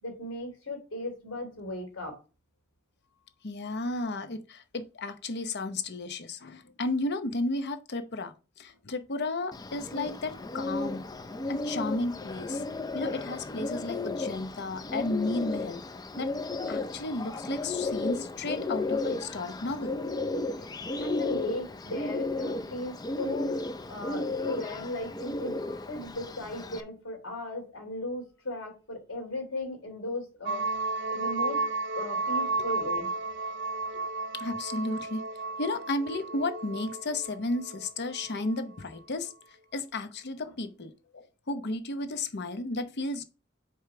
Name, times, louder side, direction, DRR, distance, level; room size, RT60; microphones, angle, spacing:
voice 1, 0.0-2.2 21.0-25.5 25.9-30.7 31.1-31.6 31.9-33.1, left 1 dB, 85° left, 3.1 m, -36 dB
voice 2, 3.4-11.0 11.5-12.6 12.9-15.8 16.2-16.3 16.7-20.0 33.9-34.0 34.4-35.2 35.6-39.3 39.7-43.2, left 2 dB, 55° left, 0.8 m, -33 dB
Bird, 9.5-26.8, left 3 dB, 20° left, 0.4 m, -34 dB
sound 1, 30.5-38.6, right 3 dB, 60° right, 0.7 m, -33 dB
5.0 x 4.6 x 5.8 m
head